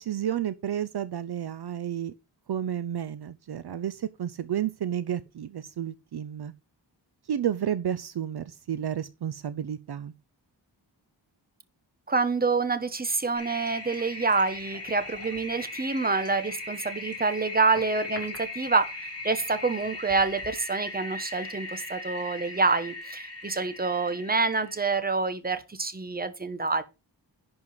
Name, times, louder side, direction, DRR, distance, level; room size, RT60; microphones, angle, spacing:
voice 1, 0.0-2.1 2.5-6.5 7.3-10.1, right 10 dB, 60° right, 0.6 m, -31 dB
voice 2, 12.1-26.8, right 4 dB, 20° right, 1.0 m, -27 dB
Toilet flush, 13.3-24.9, left 2 dB, 35° left, 3.4 m, -39 dB
11.0 x 4.7 x 5.5 m
wide cardioid pair, 150°, 44 cm